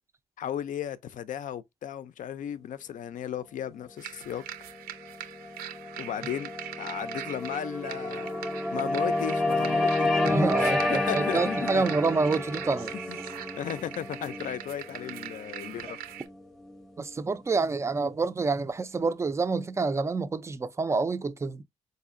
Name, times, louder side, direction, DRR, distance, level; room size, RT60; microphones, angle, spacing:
voice 1, 0.4-4.4 6.0-6.5 6.8-10.1 10.6-11.8 13.1-13.2 13.5-16.0, left 9 dB, 55° left, 0.5 m, -35 dB
sound 1, 4.0-16.3, right 11 dB, 85° right, 0.6 m, -41 dB
sound 2, 4.5-17.1, left 2 dB, ahead, 0.7 m, -30 dB
voice 2, 10.2-12.9 17.0-21.6, right 4 dB, 20° right, 0.4 m, -28 dB
4.2 x 2.6 x 2.5 m
cardioid pair, 85°, 16 cm